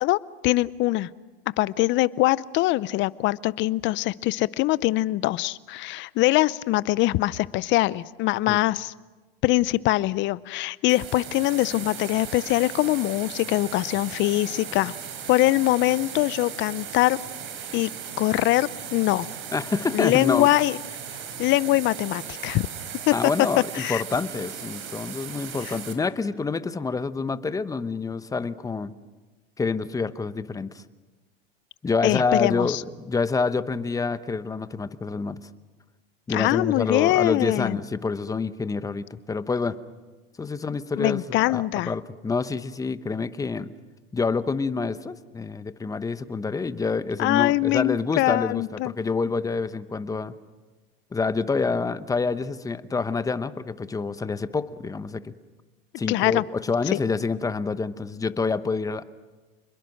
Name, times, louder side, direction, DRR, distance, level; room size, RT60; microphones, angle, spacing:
voice 1, 0.0-1.1 1.6-8.9 9.4-14.9 15.3-17.2 17.7-17.9 18.2-19.3 19.9-20.8 21.4-22.7 23.1-23.2 23.7-24.0 25.6-25.8 32.0-32.8 36.3-37.8 41.0-41.9 47.2-48.9 56.1-56.4 56.9-57.0, left 17 dB, 40° left, 20 dB, 0.7 m, -23 dB
sound 1, 10.9-25.9, right 7 dB, 45° right, 4.0 m, -37 dB
voice 2, 19.5-20.5 23.1-28.9 29.6-30.8 31.8-32.8 33.0-35.4 36.3-39.8 40.4-43.7 44.1-50.3 51.1-55.3 56.0-59.0, left 4 dB, 10° left, 14 dB, 0.8 m, -27 dB
29.0 x 21.5 x 6.5 m, 1.2 s
supercardioid pair, 120°, 29 cm